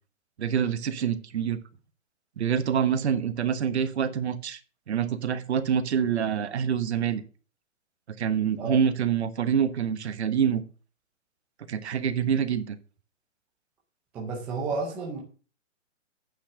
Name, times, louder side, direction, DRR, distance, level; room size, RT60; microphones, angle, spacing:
voice 1, 0.4-1.6 2.4-4.6 4.9-7.2 8.2-10.6 11.7-12.8, right 8 dB, 55° right, 11 dB, 1.3 m, -26 dB
voice 2, 14.1-15.2, right 4 dB, 5° right, -1 dB, 0.5 m, -31 dB
9.1 x 5.8 x 6.5 m, 0.38 s
hypercardioid pair, 150°, 39 cm